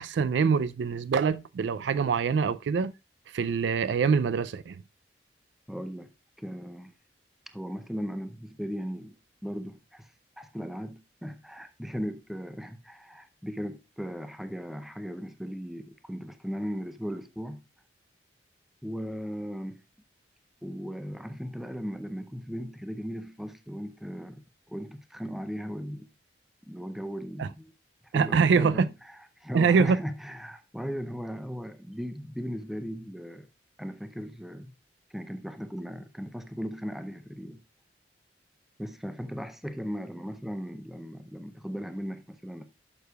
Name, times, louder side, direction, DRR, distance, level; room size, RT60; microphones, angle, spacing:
voice 1, 0.0-2.9 3.3-4.8 27.4-27.5 28.1-28.9 29.5-30.0, right 5 dB, 80° right, 0.3 m, -24 dB
voice 2, 5.7-6.1 6.4-6.9 7.5-9.2 9.4-10.1 10.4-17.6 18.8-19.8 20.6-24.4 24.7-26.1 26.7-27.7 28.0-33.5 33.8-34.7 35.1-37.6 38.8-42.6, equal, ahead, 0.5 m, -37 dB
11.0 x 6.6 x 2.3 m
head